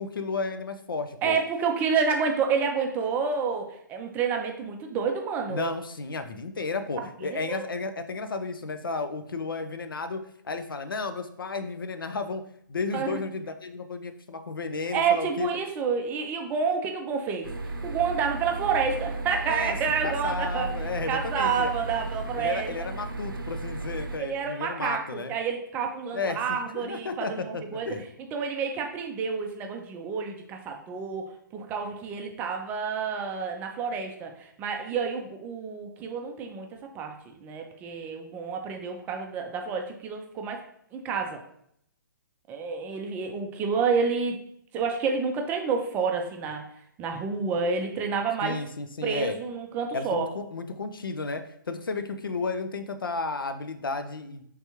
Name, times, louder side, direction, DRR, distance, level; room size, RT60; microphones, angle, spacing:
voice 1, 0.0-1.4 5.5-10.2 10.4-12.4 12.7-15.6 19.5-21.7 22.3-25.3 26.1-28.1 48.4-49.4 49.9-54.4, left 3 dB, 80° left, 9 dB, 0.5 m, -33 dB
voice 2, 1.2-5.7 7.3-7.6 12.9-13.2 14.9-17.5 17.8-20.7 21.1-22.9 24.2-27.9 28.3-31.3 31.5-36.7 36.9-37.1 37.4-40.6 40.9-41.4 42.5-44.4 44.7-46.6 47.0-48.6 49.0-50.3, right 5 dB, 15° right, 3 dB, 0.4 m, -29 dB
sound 1, 17.4-24.2, right 2 dB, 80° right, 0.6 m, -34 dB
3.4 x 3.3 x 2.9 m, 0.69 s
figure-of-eight pair, 135°, 11 cm